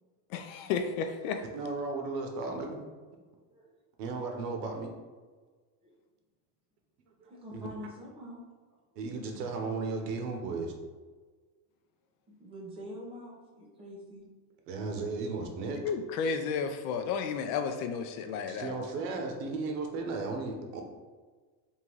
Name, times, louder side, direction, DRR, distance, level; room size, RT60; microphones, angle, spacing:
voice 1, 0.3-1.4 15.8-18.9, left 6 dB, 65° left, 6 dB, 0.6 m, -32 dB
voice 2, 1.5-2.8 4.0-4.9 7.5-7.7 9.0-10.7 14.7-15.8 18.5-20.8, right 3 dB, 90° right, 3 dB, 1.0 m, -35 dB
voice 3, 7.2-8.8 12.4-14.3, equal, 10° right, -4 dB, 0.8 m, -46 dB
3.7 x 2.7 x 4.5 m, 1.4 s
cardioid pair, 170°, 47 cm